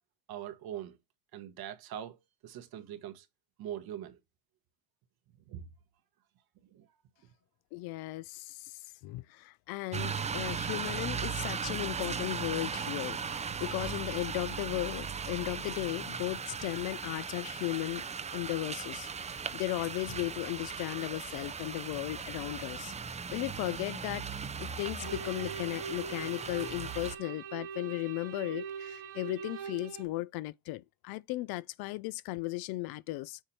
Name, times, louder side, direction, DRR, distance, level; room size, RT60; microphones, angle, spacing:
voice 1, 0.3-1.0 1.3-2.2 2.4-3.3 3.6-4.2 5.5-5.7 6.7-6.9, right 10 dB, 50° right, 1.1 m, -42 dB
voice 2, 7.7-18.1 18.3-24.2 24.6-33.4, left 19 dB, 55° left, 0.5 m, -36 dB
sound 1, 9.9-27.2, right 6 dB, 15° right, 0.5 m, -38 dB
sound 2, 25.0-30.0, right 6 dB, 75° right, 2.0 m, -42 dB
7.3 x 2.8 x 5.3 m
supercardioid pair, 90°, 45 cm